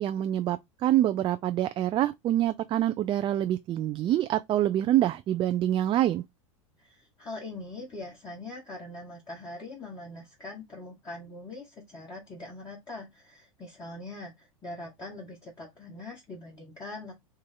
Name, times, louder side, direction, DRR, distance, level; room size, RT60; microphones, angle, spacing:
voice 1, 0.0-6.2, right 12 dB, 30° right, 0.4 m, -26 dB
voice 2, 6.8-17.1, left 2 dB, 20° left, 1.6 m, -42 dB
4.4 x 2.4 x 4.6 m
hypercardioid pair, 90°, 17 cm